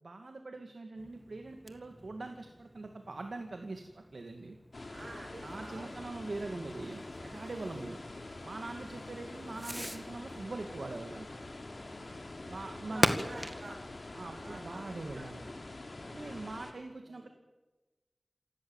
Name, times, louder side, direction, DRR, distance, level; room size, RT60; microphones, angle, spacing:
voice 1, 0.0-4.6 5.4-8.0 8.4-11.3 12.5-13.2 14.1-15.5 16.1-17.3, right 2 dB, 75° right, 5 dB, 2.2 m, -43 dB
Fireworks, 0.9-15.5, equal, 10° right, 1.9 m, -41 dB
sound 1, 4.7-16.7, left 2 dB, 55° left, 3.1 m, -46 dB
voice 2, 4.9-5.9 7.4-7.5 8.7-8.9 11.8-12.2 12.9-13.8 14.2-15.3 16.0-16.4, right 2 dB, 90° right, 2 dB, 7.5 m, -49 dB
27.5 x 17.0 x 7.4 m, 1.1 s
wide cardioid pair, 75°, 0 cm